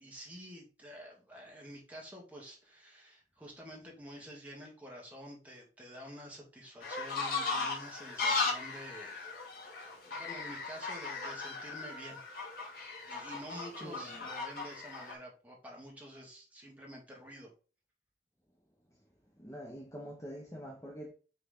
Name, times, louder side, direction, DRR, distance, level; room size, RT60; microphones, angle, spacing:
voice 1, 0.0-9.3 10.1-12.3 13.1-17.5, equal, 10° right, 2.0 m, -49 dB
sound 1, 6.8-15.1, left 4 dB, 55° left, 2.2 m, -37 dB
voice 2, 13.8-14.2 19.4-21.1, equal, 15° left, 1.1 m, -45 dB
6.9 x 3.9 x 3.8 m
head